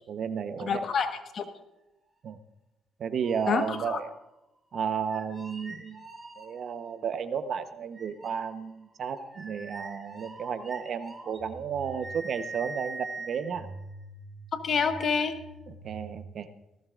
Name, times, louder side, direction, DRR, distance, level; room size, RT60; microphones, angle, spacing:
voice 1, 0.1-0.8 2.2-2.4 3.0-4.1 4.7-6.0 6.4-13.7 15.7-16.5, right 7 dB, 55° right, 10 dB, 1.0 m, -33 dB
voice 2, 0.6-1.4 3.5-4.0 14.6-15.3, left 6 dB, 55° left, 7 dB, 1.4 m, -27 dB
sound 1, 3.2-4.2 5.0-6.9 7.9-16.2, right 3 dB, 25° right, 3.5 m, -44 dB
19.0 x 15.5 x 2.5 m, 0.93 s
cardioid pair, 95°, 0 cm